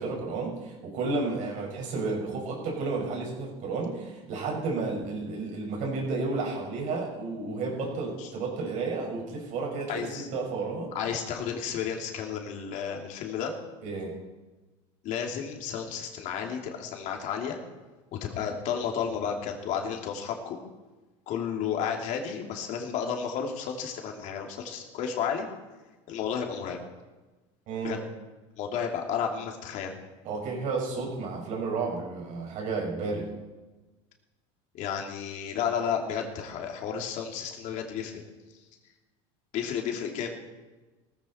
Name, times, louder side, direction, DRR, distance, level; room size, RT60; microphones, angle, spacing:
voice 1, 0.0-10.9 13.8-14.1 27.7-28.0 30.2-33.3, right 3 dB, 55° right, 0 dB, 6.0 m, -32 dB
voice 2, 9.9-10.3 10.9-13.5 15.0-17.6 18.1-20.6 21.3-25.5 26.1-26.8 27.8-28.0 28.6-29.9 34.7-38.2 39.5-40.3, left 7 dB, 55° left, 2 dB, 2.9 m, -32 dB
18.0 x 14.5 x 4.4 m, 1.2 s
supercardioid pair, 115°, 15 cm